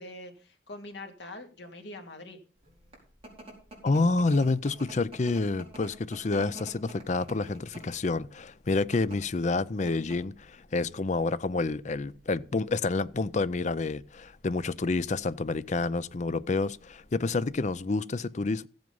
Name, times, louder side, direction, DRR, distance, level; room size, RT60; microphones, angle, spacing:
voice 1, 0.0-2.4, left 2 dB, 70° left, 2.3 m, -44 dB
sound 1, 2.6-17.8, right 1 dB, 35° right, 4.6 m, -50 dB
voice 2, 3.8-18.7, left 3 dB, 40° left, 0.5 m, -28 dB
15.0 x 7.8 x 5.4 m
head